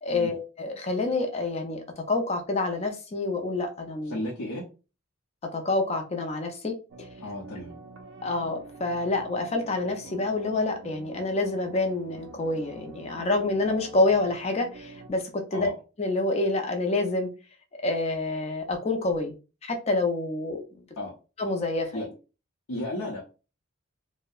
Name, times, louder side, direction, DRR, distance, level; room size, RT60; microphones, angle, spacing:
voice 1, 0.0-4.2 5.4-7.1 8.2-15.7 16.0-17.3 17.8-19.3 19.6-20.6 21.4-22.0, left 2 dB, 30° left, 4 dB, 0.4 m, -27 dB
voice 2, 4.0-4.6 7.2-7.8 15.5-15.7 21.0-21.1 21.9-22.1 22.7-23.2, left 1 dB, 90° left, -4 dB, 0.6 m, -33 dB
sound 1, 6.9-15.1, right 3 dB, 60° right, 0.3 m, -46 dB
2.6 x 2.0 x 2.3 m, 0.32 s
head